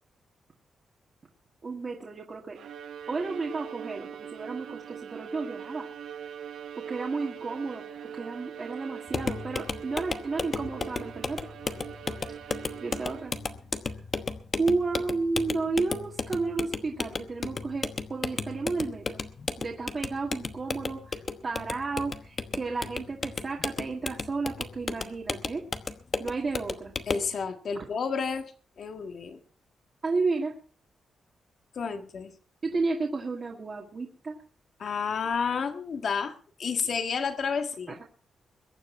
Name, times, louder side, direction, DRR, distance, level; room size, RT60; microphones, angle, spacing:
voice 1, 1.6-2.6 3.1-5.9 6.8-11.5 12.8-13.3 14.5-19.2 19.6-25.6 26.2-26.9 30.0-30.5 32.6-34.4 37.9-38.0, right 3 dB, 30° right, -2 dB, 2.0 m, -32 dB
Bowed string instrument, 2.6-13.6, right 8 dB, 85° right, 1.4 m, -42 dB
sound 1, 9.1-27.3, left 4 dB, 30° left, 1.0 m, -34 dB
voice 2, 27.1-28.4 28.8-29.4 31.7-32.3 34.8-36.3 36.6-38.0, left 5 dB, 50° left, 7 dB, 1.7 m, -30 dB
22.0 x 9.7 x 4.5 m, 0.40 s
wide cardioid pair, 170°, 0 cm